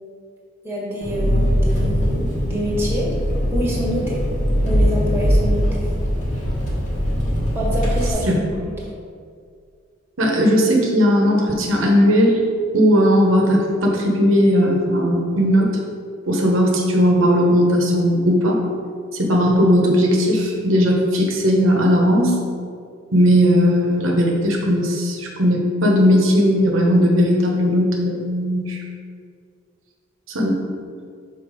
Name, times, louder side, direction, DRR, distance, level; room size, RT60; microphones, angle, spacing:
voice 1, 0.6-3.1 3.5-4.2 4.6-5.9 7.5-8.7, equal, 10° right, -6 dB, 1.5 m, -26 dB
Engine, 1.0-8.1, equal, 40° left, 1.6 m, -21 dB
voice 2, 10.2-12.4 12.7-15.7 16.3-18.6 19.1-22.3 23.1-28.8 30.3-30.6, equal, 85° right, 0 dB, 1.0 m, -17 dB
5.7 x 4.1 x 5.0 m, 2.2 s
head